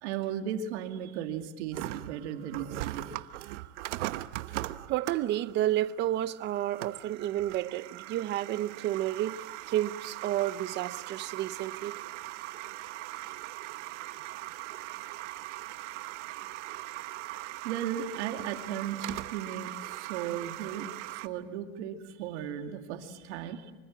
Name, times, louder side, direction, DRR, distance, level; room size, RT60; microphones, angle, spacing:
voice 1, 0.0-3.1 17.6-20.9 21.2-23.6, right 9 dB, 75° right, 2.5 m, -36 dB
sound 1, 1.7-21.3, right 16 dB, 90° right, 1.1 m, -40 dB
voice 2, 4.9-12.0, right 13 dB, 30° right, 0.8 m, -31 dB
26.0 x 25.0 x 7.5 m
supercardioid pair, 165°, 35 cm